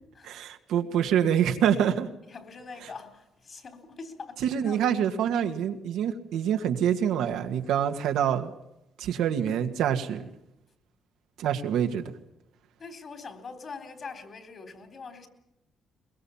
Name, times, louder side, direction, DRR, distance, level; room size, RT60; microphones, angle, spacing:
voice 1, 0.2-2.1 4.4-8.5 9.0-10.3 11.4-12.0, right 9 dB, 85° right, 2.0 m, -26 dB
voice 2, 2.3-4.8 12.8-15.3, left 4 dB, 45° left, 3.9 m, -43 dB
22.0 x 21.5 x 7.3 m
cardioid pair, 90°, 0 cm